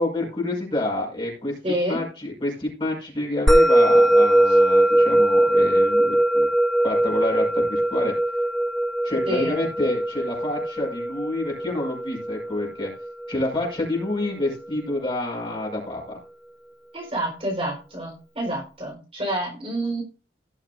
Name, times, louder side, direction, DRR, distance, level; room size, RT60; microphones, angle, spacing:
voice 1, 0.0-6.5 6.8-8.1 9.0-12.9 13.3-16.2, left 1 dB, 30° left, -2 dB, 5.5 m, -28 dB
voice 2, 1.6-2.0 9.3-9.5 16.9-20.0, right 1 dB, 30° right, -2 dB, 4.3 m, -28 dB
Musical instrument, 3.5-14.1, right 1 dB, 5° left, 0.9 m, -20 dB
18.0 x 6.7 x 2.6 m, 0.34 s
head